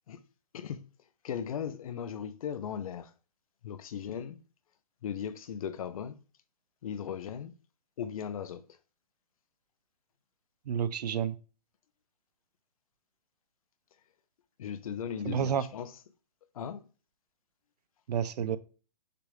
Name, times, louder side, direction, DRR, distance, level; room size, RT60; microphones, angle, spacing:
voice 1, 0.5-0.9 1.2-3.1 3.6-4.4 5.0-6.2 6.8-7.5 8.0-8.6 14.6-15.9 16.5-16.8 18.5-18.6, left 8 dB, 55° left, 0.5 m, -37 dB
voice 2, 10.7-11.4 15.2-15.6 18.1-18.6, right 8 dB, 70° right, 0.5 m, -30 dB
6.6 x 2.4 x 3.2 m
hypercardioid pair, 150°, 21 cm